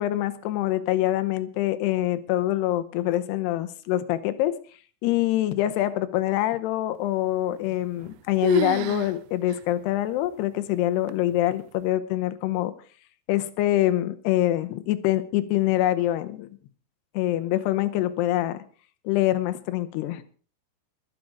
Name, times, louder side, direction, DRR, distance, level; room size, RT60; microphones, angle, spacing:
voice 1, 0.0-4.6 5.0-12.7 13.3-16.5 17.1-18.6 19.0-20.2, left 14 dB, 75° left, 12 dB, 2.6 m, -25 dB
sound 1, 7.7-8.2 8.4-9.2 9.5-9.6 10.3-10.4 11.1-11.5, right 14 dB, 80° right, 3.0 m, -30 dB
21.5 x 7.7 x 5.0 m, 0.40 s
omnidirectional pair, 5.6 m